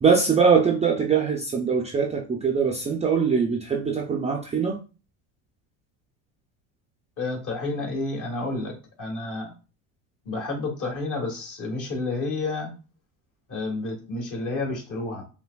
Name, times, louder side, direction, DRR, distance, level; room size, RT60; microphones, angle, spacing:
voice 1, 0.0-4.8, right 5 dB, 15° right, 0 dB, 0.4 m, -22 dB
voice 2, 7.2-9.5 10.2-12.7 13.5-15.2, left 2 dB, 45° left, 1 dB, 1.7 m, -30 dB
5.4 x 2.2 x 2.3 m, 0.33 s
supercardioid pair, 90°, 43 cm